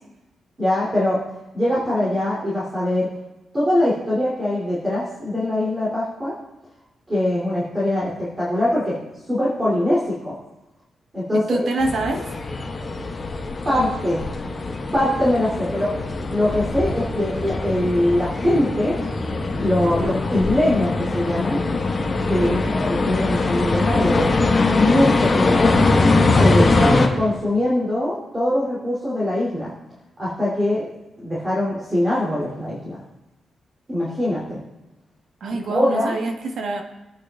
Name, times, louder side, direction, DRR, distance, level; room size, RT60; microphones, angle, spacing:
voice 1, 0.6-1.2 1.5-3.1 3.5-6.3 7.1-9.0 9.3-10.4 11.1-11.7 13.6-14.2 14.9-16.0 16.3-19.0 19.6-21.6 22.3-24.3 24.7-25.8 26.3-29.7 30.2-30.9 31.2-33.0 33.9-34.6 35.5-36.1, left 1 dB, 20° right, -7 dB, 3.1 m, -22 dB
voice 2, 11.5-12.2 22.4-22.7 35.4-36.8, right 2 dB, 65° right, 3 dB, 1.4 m, -25 dB
sound 1, 11.8-27.1, left 3 dB, 25° left, 1.4 m, -22 dB
20.5 x 9.0 x 2.5 m, 1.0 s
wide cardioid pair, 175°, 0 cm